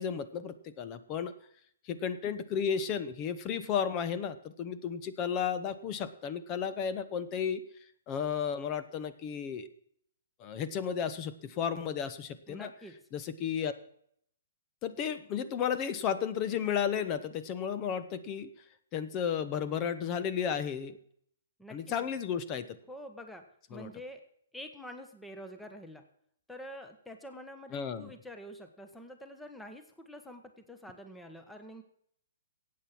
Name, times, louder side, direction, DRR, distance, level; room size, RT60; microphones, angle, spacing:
voice 1, 0.0-1.3 1.9-7.6 8.1-9.7 10.4-12.7 13.1-13.7 14.8-18.5 18.9-21.0 21.7-22.8 23.7-23.9 27.7-28.1, left 7 dB, 30° left, 12 dB, 1.1 m, -33 dB
voice 2, 12.5-13.0 21.6-22.1 22.9-23.4 23.7-24.2 24.5-26.0 26.5-31.8, equal, 5° left, 6 dB, 1.5 m, -47 dB
15.5 x 8.7 x 6.0 m, 0.66 s
hypercardioid pair, 135°, 0 cm